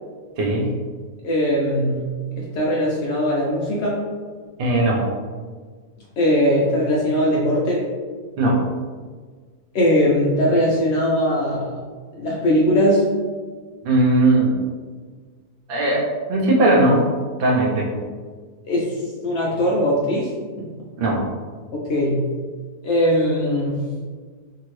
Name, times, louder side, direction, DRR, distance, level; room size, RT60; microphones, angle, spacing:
voice 1, 1.2-2.1 2.4-4.0 6.2-7.8 9.7-11.7 12.2-13.0 18.7-18.9 19.2-20.3 20.6-20.7 21.7-22.3 22.8-23.8, equal, 80° left, -4 dB, 0.6 m, -20 dB
voice 2, 4.6-5.0 8.4-8.6 13.8-14.6 15.7-17.0 17.4-17.9 21.0-21.2, right 2 dB, 85° right, -2 dB, 0.5 m, -18 dB
2.7 x 2.7 x 3.0 m, 1.5 s
omnidirectional pair, 1.7 m